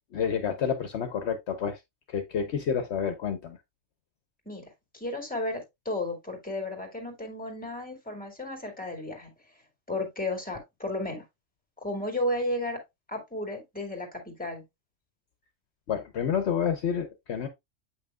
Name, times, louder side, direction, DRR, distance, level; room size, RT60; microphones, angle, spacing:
voice 1, 0.1-1.8 2.1-3.6 15.9-17.5, left 7 dB, 65° left, 1.0 m, -29 dB
voice 2, 4.5-9.3 9.9-11.2 11.8-12.8 13.1-14.6, left 1 dB, 5° left, 2.1 m, -33 dB
7.9 x 5.7 x 2.3 m
omnidirectional pair, 1.3 m